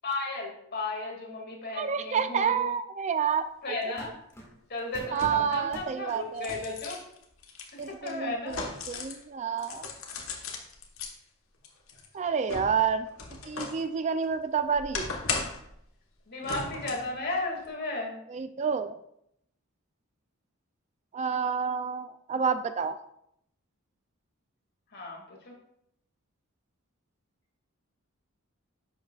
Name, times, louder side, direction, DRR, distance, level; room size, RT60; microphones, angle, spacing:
voice 1, 0.0-2.7 3.6-4.1 4.7-7.0 8.0-8.6 8.9-9.0 16.3-18.2 24.9-25.5, left 2 dB, 50° left, 0 dB, 2.2 m, -34 dB
voice 2, 1.7-3.9 5.1-6.5 7.8-9.9 12.1-13.1 13.4-15.1 18.3-18.9 21.1-23.0, right 6 dB, 35° right, 11 dB, 0.3 m, -29 dB
sound 1, 3.2-3.4 4.0-5.2 5.6-5.9 6.6-6.7 7.2-8.0, equal, 15° left, 2.1 m, -48 dB
sound 2, 3.8-3.9 5.1-5.6 6.1-9.2 9.6-11.1 11.6-13.8 14.2-15.7 16.4-17.1 17.6-17.7, left 4 dB, 70° left, 1.3 m, -37 dB
10.5 x 7.0 x 2.4 m, 0.75 s
head